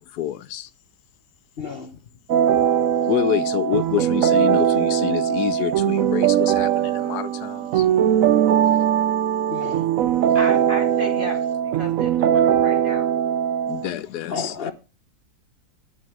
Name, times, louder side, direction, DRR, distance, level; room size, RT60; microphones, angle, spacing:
voice 1, 0.1-0.7 3.1-7.9 13.7-14.7, left 11 dB, 85° left, 1.3 m, -27 dB
voice 2, 1.6-1.9 9.5-9.9 14.3-14.7, left 5 dB, 45° left, 1.0 m, -31 dB
sound 1, 2.3-13.9, right 9 dB, 65° right, 1.0 m, -20 dB
voice 3, 10.3-13.1, equal, 30° right, 2.6 m, -34 dB
9.7 x 5.6 x 7.3 m
omnidirectional pair, 1.7 m